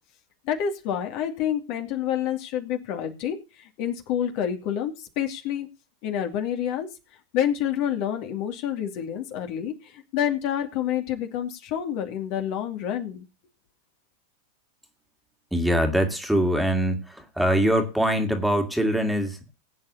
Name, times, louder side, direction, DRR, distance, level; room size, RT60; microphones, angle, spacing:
voice 1, 0.5-5.7 6.0-6.9 7.3-13.3, left 9 dB, 45° left, 4 dB, 2.3 m, -28 dB
voice 2, 15.5-19.5, equal, ahead, 4 dB, 2.3 m, -23 dB
20.5 x 9.0 x 2.8 m, 0.30 s
figure-of-eight pair, 90°, 0 cm